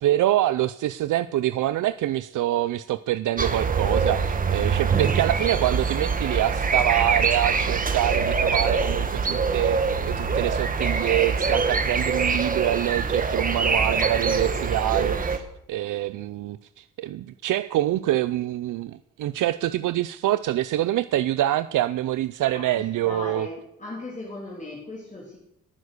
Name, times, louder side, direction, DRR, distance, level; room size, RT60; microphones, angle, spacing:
voice 1, 0.0-23.5, right 14 dB, 80° right, 15 dB, 0.6 m, -25 dB
sound 1, 3.4-15.4, right 5 dB, 25° right, 1.3 m, -24 dB
voice 2, 22.5-25.4, left 2 dB, 25° left, -2 dB, 2.9 m, -38 dB
20.5 x 9.7 x 6.6 m, 0.80 s
wide cardioid pair, 160°, 31 cm